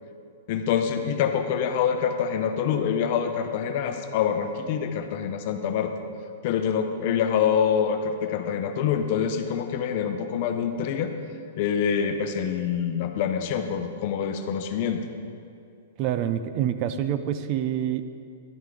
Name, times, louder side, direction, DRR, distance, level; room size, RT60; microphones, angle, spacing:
voice 1, 0.5-5.9 6.4-11.1 11.6-15.0, left 7 dB, 45° left, 7 dB, 0.8 m, -26 dB
voice 2, 16.0-18.0, right 10 dB, 35° right, 11 dB, 0.4 m, -26 dB
11.5 x 9.4 x 3.9 m, 2.4 s
hypercardioid pair, 155°, 0 cm